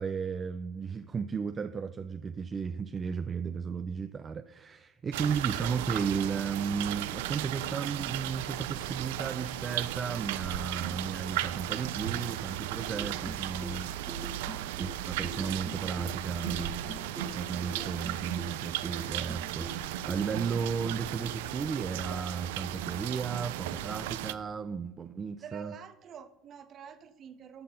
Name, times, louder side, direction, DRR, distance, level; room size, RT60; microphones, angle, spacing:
voice 1, 0.0-14.0 14.4-16.8 17.3-25.7, right 6 dB, 30° right, 10 dB, 0.5 m, -34 dB
sound 1, 5.1-24.3, right 13 dB, 90° right, 0.5 m, -36 dB
sound 2, 12.8-21.1, left 1 dB, 5° right, 1.4 m, -45 dB
voice 2, 17.8-18.2 25.4-27.6, right 8 dB, 45° right, 12 dB, 1.0 m, -47 dB
13.5 x 5.9 x 5.5 m, 1.0 s
supercardioid pair, 105°, 0 cm